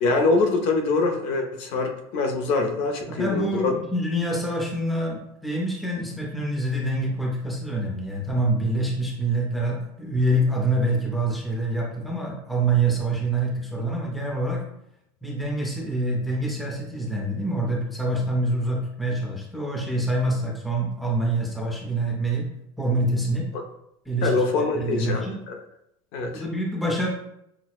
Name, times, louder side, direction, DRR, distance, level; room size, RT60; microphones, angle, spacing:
voice 1, 0.0-3.7 23.5-23.6 24.2-25.6 26.1-26.4, left 3 dB, 50° left, 3 dB, 0.5 m, -24 dB
voice 2, 3.1-14.6 15.2-22.5 22.8-23.5 24.1-24.3 24.7-25.4 26.3-27.1, right 1 dB, ahead, -2 dB, 0.5 m, -26 dB
5.8 x 2.0 x 2.3 m, 0.78 s
cardioid pair, 170°, 13 cm